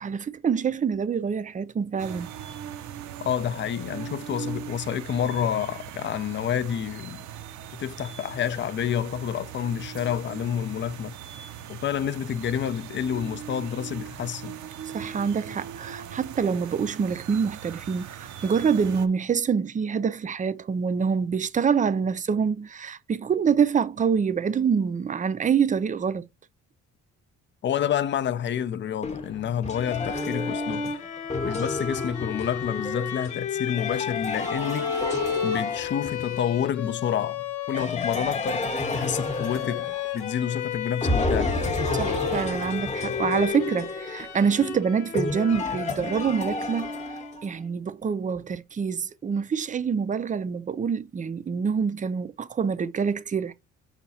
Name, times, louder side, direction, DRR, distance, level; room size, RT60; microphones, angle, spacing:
voice 1, 0.0-2.3 14.8-26.2 41.9-46.9 47.4-53.5, right 6 dB, 25° right, 0.4 m, -26 dB
sound 1, 2.0-19.1, right 9 dB, 70° right, 0.6 m, -40 dB
voice 2, 3.2-7.2 7.8-11.1 11.7-14.6 27.6-30.9 31.4-34.9 35.4-41.6, left 9 dB, 40° left, 0.4 m, -29 dB
sound 2, 29.0-36.4 37.7-40.6 41.0-47.5, left 3 dB, 25° left, 0.9 m, -31 dB
Bowed string instrument, 29.7-47.5, left 6 dB, 85° left, 1.0 m, -33 dB
5.6 x 2.3 x 4.1 m
cardioid pair, 90°, 30 cm